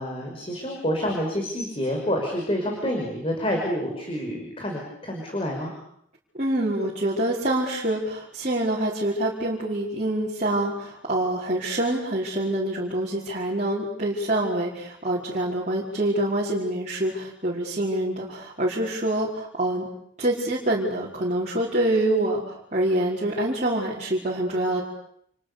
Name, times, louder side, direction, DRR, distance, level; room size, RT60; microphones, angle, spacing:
voice 1, 0.0-5.7, equal, 30° left, 1 dB, 5.5 m, -28 dB
voice 2, 6.4-19.9 20.2-24.8, right 1 dB, 35° right, -6 dB, 5.0 m, -26 dB
30.0 x 29.0 x 6.9 m, 0.70 s
head